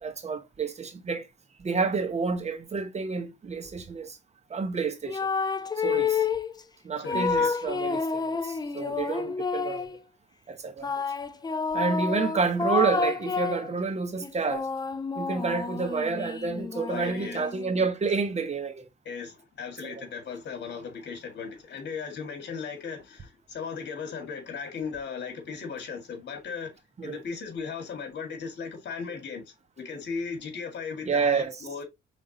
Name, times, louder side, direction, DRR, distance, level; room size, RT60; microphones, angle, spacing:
voice 1, 0.0-1.3 1.6-4.2 4.5-5.3 5.8-6.3 6.8-9.9 10.5-10.9 11.7-14.7 15.2-18.9 19.8-20.0 27.0-27.2 31.1-31.6, right 4 dB, 35° right, 1.0 m, -29 dB
sound 1, 5.1-6.5 7.0-10.0 10.8-13.7 14.2-17.8, left 4 dB, 20° left, 0.5 m, -29 dB
voice 2, 7.0-7.6 16.9-17.5 19.0-31.8, left 5 dB, 60° left, 1.9 m, -37 dB
5.0 x 3.6 x 2.8 m
cardioid pair, 90°, 20 cm